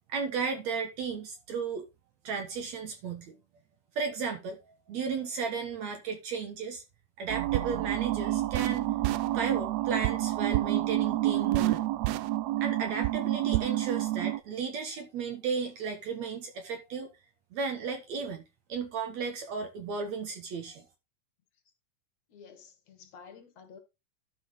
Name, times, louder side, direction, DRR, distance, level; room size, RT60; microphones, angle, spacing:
voice 1, 0.1-1.8 2.2-3.4 4.0-6.8 7.2-8.9 9.3-11.9 12.6-17.1 17.5-18.4 18.7-20.9, right 5 dB, 65° right, 2.3 m, -34 dB
sound 1, 7.3-14.4, right 16 dB, 90° right, 1.5 m, -28 dB
voice 2, 22.3-23.8, left 6 dB, 60° left, 2.5 m, -51 dB
12.0 x 5.6 x 3.8 m
omnidirectional pair, 3.7 m